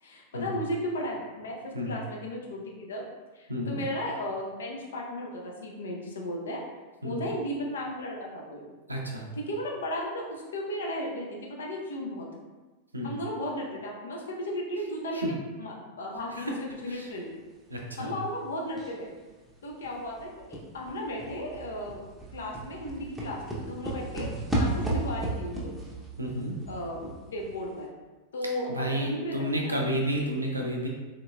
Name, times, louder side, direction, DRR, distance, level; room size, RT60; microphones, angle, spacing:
voice 1, 0.0-3.1 3.3-6.6 7.0-8.6 9.3-12.3 13.0-17.3 18.0-19.1 19.6-22.0 22.3-25.8 26.7-27.9 28.3-29.8, equal, 65° left, -1 dB, 0.6 m, -35 dB
voice 2, 3.5-3.8 7.0-7.3 8.9-9.3 12.9-13.1 15.1-15.3 16.9-17.1 17.7-18.1 24.2-24.4 26.2-26.6 28.7-30.9, equal, 80° right, 0 dB, 0.5 m, -31 dB
sound 1, 18.8-19.1 19.5-19.6 19.8-27.6 27.8-27.9, right 1 dB, ahead, 0.7 m, -34 dB
3.9 x 2.8 x 2.3 m, 1.2 s
figure-of-eight pair, 90°, 0 cm